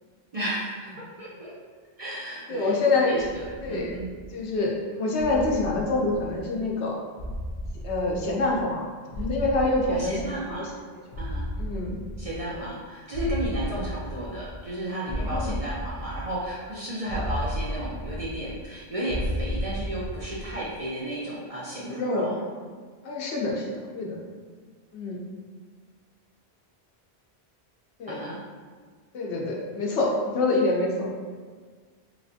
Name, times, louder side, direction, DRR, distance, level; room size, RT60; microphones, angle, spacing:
voice 1, 0.3-1.6 2.0-2.7 3.0-4.1 9.9-10.7 11.2-11.5 12.2-22.4 28.1-28.4, right 1 dB, 50° right, -6 dB, 0.4 m, -33 dB
voice 2, 2.5-3.1 3.6-4.0 4.3-7.0 7.8-8.9 9.2-10.6 10.9-11.0 11.6-12.0 12.5-12.6 15.2-15.5 21.9-22.4 23.0-24.2 24.9-25.2 28.0-28.2 29.1-31.1, left 2 dB, 85° left, -2 dB, 0.9 m, -26 dB
sound 1, 3.2-4.5 5.2-6.7 7.2-8.8 9.1-10.7 11.1-12.8 13.1-14.7 15.1-16.7 17.1-18.7 19.1-20.7, equal, 50° left, 0.6 m, -34 dB
3.2 x 3.0 x 2.6 m, 1.5 s
omnidirectional pair, 1.1 m